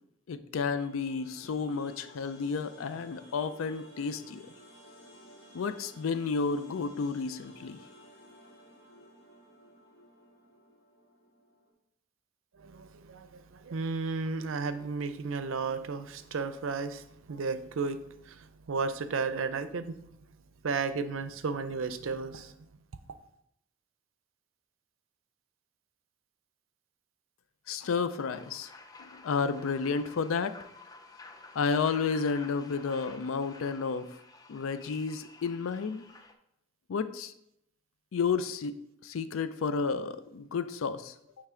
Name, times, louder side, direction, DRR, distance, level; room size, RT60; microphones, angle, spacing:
voice 1, 0.3-4.5 5.5-7.8 27.7-28.7 29.0-30.5 31.5-34.1 34.5-36.1 36.9-37.3 38.1-38.8 39.0-41.1, left 5 dB, 85° left, 0.4 m, -31 dB
sound 1, 0.6-11.7, equal, 70° left, 2.4 m, -55 dB
voice 2, 12.6-20.0 20.6-22.5, right 4 dB, 80° right, 0.5 m, -34 dB
sound 2, 28.3-36.3, left 3 dB, 20° left, 0.4 m, -51 dB
8.9 x 3.3 x 3.7 m
head